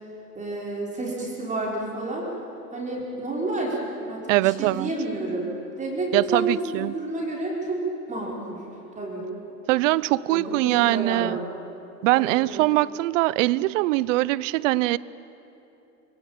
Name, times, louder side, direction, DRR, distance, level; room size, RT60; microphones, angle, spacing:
voice 1, 0.3-2.3 2.7-3.8 4.0-5.5 5.8-8.6 8.9-9.2 10.3-11.5 12.1-12.6, right 2 dB, 15° right, -3 dB, 5.1 m, -30 dB
voice 2, 4.3-4.9 6.1-6.9 9.7-11.4 12.0-15.0, right 18 dB, 50° right, 21 dB, 0.7 m, -22 dB
25.5 x 25.0 x 8.9 m, 2.9 s
hypercardioid pair, 130°, 48 cm